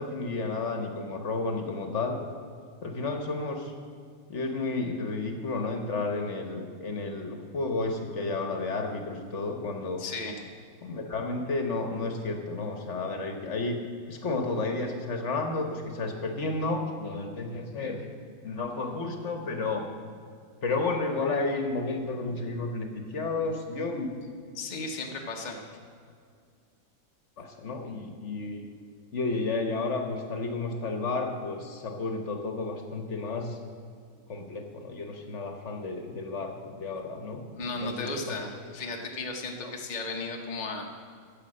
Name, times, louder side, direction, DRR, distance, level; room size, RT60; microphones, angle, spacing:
voice 1, 0.0-2.2 2.8-3.7 4.3-10.0 10.8-13.8 14.1-18.0 18.4-19.9 20.6-24.1 27.4-28.6 29.1-33.6 34.3-37.4 37.7-38.3 39.6-39.7, left 3 dB, 50° left, 4 dB, 1.4 m, -32 dB
voice 2, 10.0-10.4 24.5-25.6 37.5-40.9, left 3 dB, 35° left, 1 dB, 1.0 m, -35 dB
15.0 x 5.7 x 7.5 m, 2.2 s
omnidirectional pair, 1.6 m